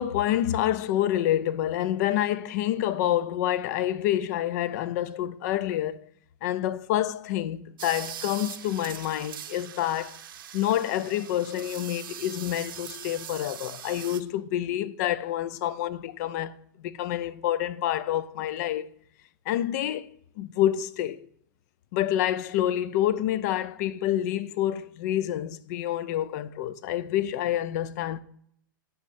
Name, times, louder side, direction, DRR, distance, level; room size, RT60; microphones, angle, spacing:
voice 1, 0.0-6.0 6.4-10.2 10.5-18.9 19.5-20.1 20.4-21.3 21.9-28.2, left 12 dB, 50° left, 0.5 m, -28 dB
sound 1, 7.8-14.2, right 10 dB, 80° right, 0.7 m, -41 dB
9.4 x 5.7 x 2.6 m
hypercardioid pair, 140°, 11 cm